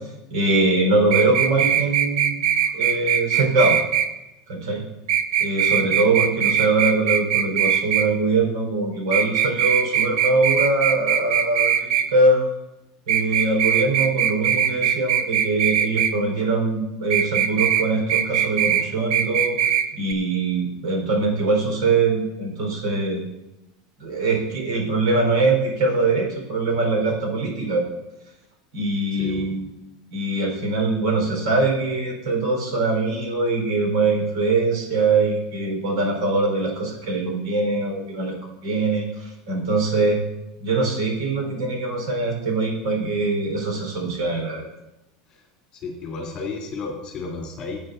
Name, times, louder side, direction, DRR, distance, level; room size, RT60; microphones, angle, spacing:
voice 1, 0.3-2.4 2.7-3.8 4.5-4.8 5.4-12.5 13.1-19.6 19.9-23.2 24.0-27.8 28.7-29.7 30.1-40.2 40.6-44.7, right 3 dB, 85° right, 1 dB, 4.5 m, -22 dB
sound 1, 1.1-4.1 5.1-8.1 9.1-12.1 13.1-16.1 17.1-17.8 18.1-18.8 19.1-19.8 20.1-20.2, right 9 dB, 70° right, 0.9 m, -20 dB
voice 2, 2.5-2.9 29.1-29.5 45.3-45.4 45.7-47.8, left 4 dB, 25° left, -3 dB, 3.2 m, -33 dB
18.0 x 8.9 x 2.7 m, 0.95 s
supercardioid pair, 180°, 3 cm